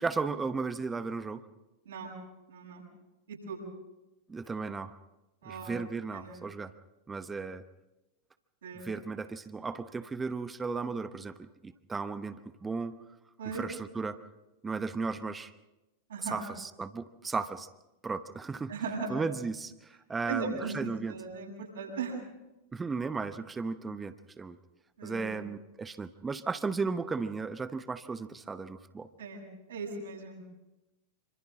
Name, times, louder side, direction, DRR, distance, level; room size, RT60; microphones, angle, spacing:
voice 1, 0.0-1.4 4.3-4.9 5.4-6.7 7.1-7.6 8.8-11.3 11.6-13.0 13.5-14.2 14.6-15.5 16.2-17.7 18.0-18.7 19.1-21.1 22.7-24.6 25.0-29.1, right 4 dB, 15° right, 13 dB, 0.9 m, -35 dB
voice 2, 2.5-2.8 3.3-3.6 5.4-5.7 6.1-6.4 8.6-8.9 13.4-13.7 16.1-16.5 18.7-19.2 20.2-22.2 25.0-25.4 29.2-29.4 29.7-30.4, right 4 dB, 65° right, -2 dB, 7.5 m, -38 dB
27.5 x 25.5 x 3.8 m, 1.0 s
figure-of-eight pair, 90°, 0 cm